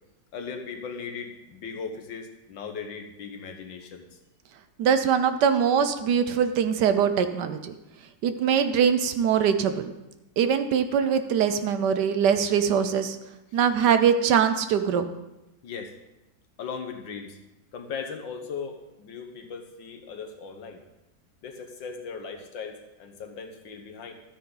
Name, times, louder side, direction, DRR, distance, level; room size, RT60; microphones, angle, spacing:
voice 1, 0.3-4.2 13.5-13.6 15.6-15.9 16.6-17.4 17.7-20.8 21.4-24.1, left 5 dB, 80° left, 4 dB, 1.9 m, -38 dB
voice 2, 4.8-7.7 8.2-9.9 10.4-13.2 13.5-15.0, right 7 dB, 70° right, 10 dB, 1.3 m, -22 dB
13.0 x 9.3 x 3.9 m, 0.95 s
omnidirectional pair, 2.0 m